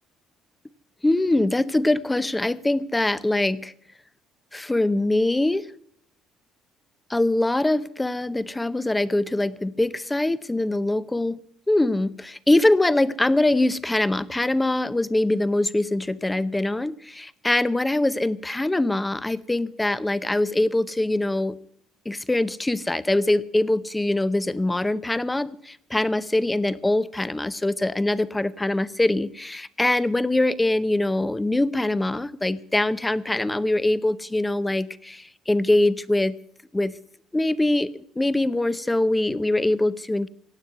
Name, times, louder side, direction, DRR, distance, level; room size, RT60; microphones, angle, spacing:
voice 1, 1.0-3.7 4.5-5.7 7.1-11.4 11.7-21.6 22.1-36.4 36.7-37.0 37.3-40.3, left 2 dB, 10° left, 17 dB, 0.6 m, -23 dB
16.5 x 9.3 x 9.5 m, 0.70 s
cardioid pair, 140°, 0 cm